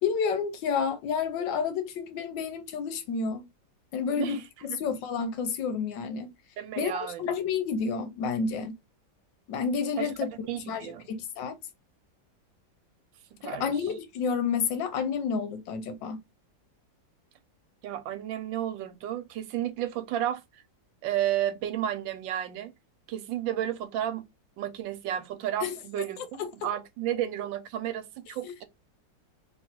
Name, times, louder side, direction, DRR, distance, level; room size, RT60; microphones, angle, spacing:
voice 1, 0.0-3.5 3.9-4.4 4.8-6.3 6.8-8.8 9.5-10.3 10.7-11.6 13.4-16.2 25.6-25.8 26.4-26.5 28.4-28.5, left 6 dB, 75° left, 1.4 m, -30 dB
voice 2, 6.6-7.3 10.0-10.1 10.5-11.0 13.4-13.7 17.8-20.4 21.0-22.7 23.1-24.2 24.6-28.6, right 11 dB, 90° right, 1.4 m, -32 dB
3.1 x 2.9 x 4.3 m
omnidirectional pair, 2.0 m